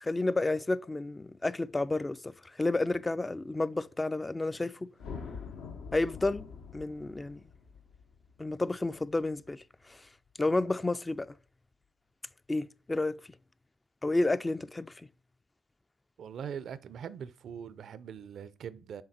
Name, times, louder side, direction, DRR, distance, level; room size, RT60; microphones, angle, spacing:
voice 1, 0.0-2.3 2.6-4.7 5.9-6.5 6.7-7.4 8.4-9.6 10.4-11.3 12.5-13.2 14.0-14.9, left 2 dB, 20° left, 0.3 m, -30 dB
sound 1, 5.0-9.4, left 5 dB, 80° left, 0.7 m, -45 dB
voice 2, 16.2-19.0, right 8 dB, 70° right, 0.4 m, -42 dB
6.5 x 3.7 x 4.1 m
supercardioid pair, 55°, 0 cm